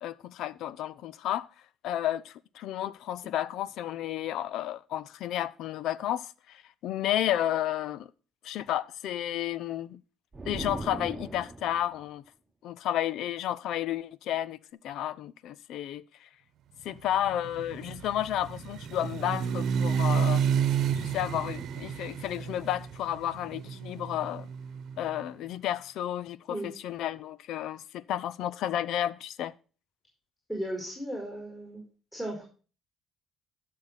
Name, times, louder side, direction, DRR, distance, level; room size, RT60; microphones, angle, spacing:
voice 1, 0.0-1.5 1.8-8.1 8.4-10.0 10.4-12.2 12.6-14.6 14.8-16.3 16.8-20.4 21.0-24.5 25.0-29.5, left 12 dB, 75° left, 0.6 m, -32 dB
sound 1, 10.3-11.9, right 3 dB, 20° right, 1.2 m, -39 dB
sound 2, 17.1-25.1, right 7 dB, 65° right, 1.0 m, -30 dB
voice 2, 30.5-31.9 32.1-32.4, right 1 dB, 5° left, 4.5 m, -35 dB
13.5 x 6.6 x 4.1 m
cardioid pair, 110°, 0 cm